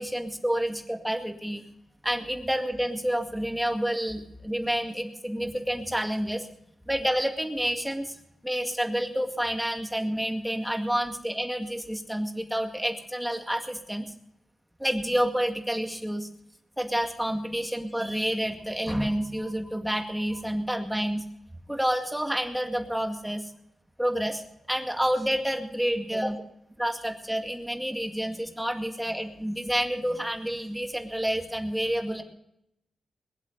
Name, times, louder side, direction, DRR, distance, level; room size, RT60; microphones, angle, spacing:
voice 1, 0.0-1.6 2.0-6.5 6.9-8.2 8.4-14.0 14.8-16.3 16.8-21.2 21.7-23.5 24.0-24.4 24.7-26.3 26.8-32.2, equal, 5° right, 3 dB, 2.1 m, -29 dB
22.0 x 8.2 x 6.6 m, 0.79 s
cardioid pair, 60°, 0 cm